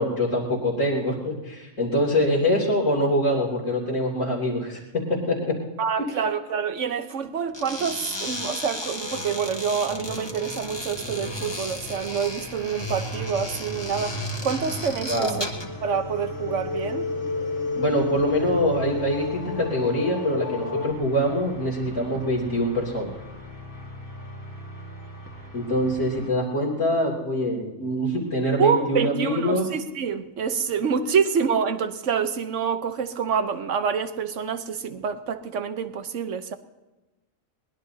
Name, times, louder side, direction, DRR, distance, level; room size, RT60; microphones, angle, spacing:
voice 1, 0.0-5.5 15.1-15.5 17.8-23.2 25.5-29.7 31.0-31.1, equal, 70° left, 3.3 m, -24 dB
voice 2, 5.8-15.5 15.8-17.1 28.6-36.5, right 6 dB, 65° right, 1.3 m, -27 dB
sound 1, 7.5-15.8, left 1 dB, 20° left, 1.7 m, -34 dB
sound 2, 9.9-26.3, left 1 dB, 15° right, 1.8 m, -42 dB
sound 3, 14.1-20.9, left 3 dB, 50° left, 1.8 m, -32 dB
22.0 x 20.0 x 2.8 m
omnidirectional pair, 1.4 m